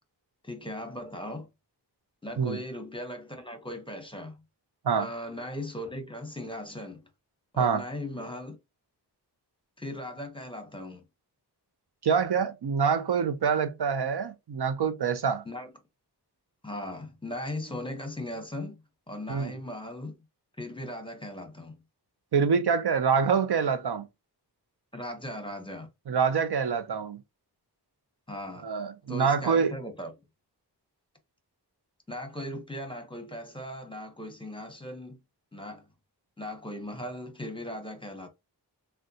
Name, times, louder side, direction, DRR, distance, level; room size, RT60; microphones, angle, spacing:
voice 1, 0.4-1.5 2.2-4.4 4.9-7.0 7.5-8.6 9.8-11.0 15.5-15.7 16.6-18.8 19.1-20.2 20.6-21.7 24.9-25.9 28.3-28.7 29.1-30.1 32.1-35.2 35.5-35.8 36.4-38.3, left 1 dB, 10° left, 0.8 m, -38 dB
voice 2, 12.0-15.4 19.3-19.5 22.3-24.1 26.1-27.2 28.6-29.7, right 6 dB, 70° right, 0.5 m, -26 dB
3.5 x 2.2 x 2.7 m
wide cardioid pair, 45°, 41 cm